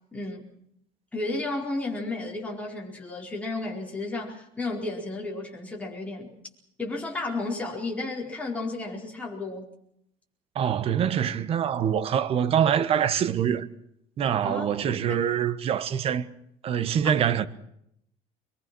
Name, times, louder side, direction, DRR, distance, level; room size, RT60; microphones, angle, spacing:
voice 1, 0.1-0.5 1.1-6.3 6.8-9.7 14.4-15.0 17.0-17.1, left 2 dB, 10° left, 4.6 m, -33 dB
voice 2, 10.5-13.7 14.2-16.3 16.6-17.5, right 9 dB, 35° right, 1.2 m, -24 dB
24.0 x 22.0 x 6.2 m
cardioid pair, 165°, 16 cm